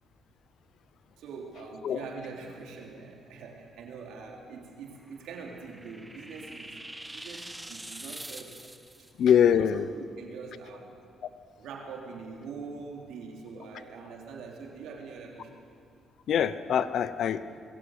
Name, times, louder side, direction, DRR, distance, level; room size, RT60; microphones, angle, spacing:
voice 1, 1.2-6.8 7.1-8.6 9.4-10.9 11.6-15.6, right 4 dB, 85° right, 0 dB, 3.6 m, -43 dB
sound 1, 5.0-9.1, right 1 dB, 10° right, 1.1 m, -44 dB
voice 2, 9.2-9.9 16.3-17.4, left 8 dB, 65° left, 14 dB, 0.8 m, -23 dB
22.0 x 15.5 x 8.1 m, 2.3 s
cardioid pair, 90°, 0 cm